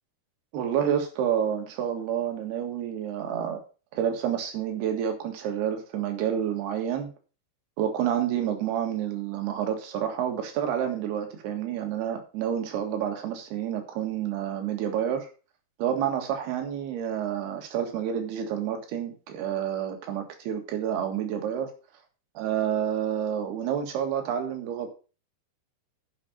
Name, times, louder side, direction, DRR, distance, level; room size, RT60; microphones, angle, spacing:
voice 1, 0.5-3.6 3.9-7.1 7.8-15.3 15.8-21.7 22.4-24.9, right 9 dB, 70° right, 5 dB, 3.8 m, -29 dB
11.0 x 5.4 x 6.6 m, 0.35 s
omnidirectional pair, 4.8 m